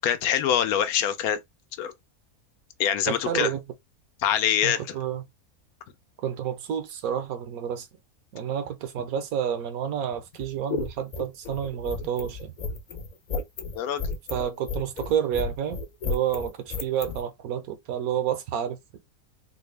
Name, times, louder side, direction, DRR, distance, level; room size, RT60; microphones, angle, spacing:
voice 1, 0.0-1.4 1.8-1.9 2.8-3.5 4.2-4.8 13.7-14.0, left 10 dB, 80° left, 1.1 m, -24 dB
voice 2, 3.1-3.6 4.6-5.2 6.2-7.9 8.3-12.5 14.3-19.0, right 9 dB, 75° right, 1.1 m, -29 dB
sound 1, 10.3-17.2, left 4 dB, 55° left, 0.5 m, -33 dB
4.0 x 2.0 x 3.2 m
omnidirectional pair, 1.6 m